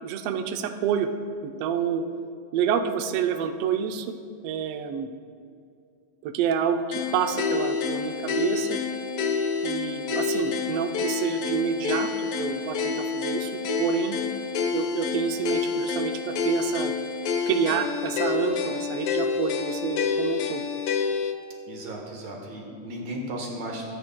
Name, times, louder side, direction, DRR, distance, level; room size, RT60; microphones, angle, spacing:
voice 1, 0.0-1.1 1.4-2.0 2.5-4.2 4.4-5.1 6.2-8.8 9.6-14.2 14.7-16.9 17.5-20.6, right 7 dB, 80° right, 6 dB, 1.4 m, -28 dB
sound 1, 6.9-21.4, left 5 dB, 75° left, 1.3 m, -28 dB
voice 2, 21.7-23.8, right 1 dB, 65° right, 0 dB, 2.5 m, -35 dB
18.0 x 9.6 x 2.2 m, 2.4 s
omnidirectional pair, 3.4 m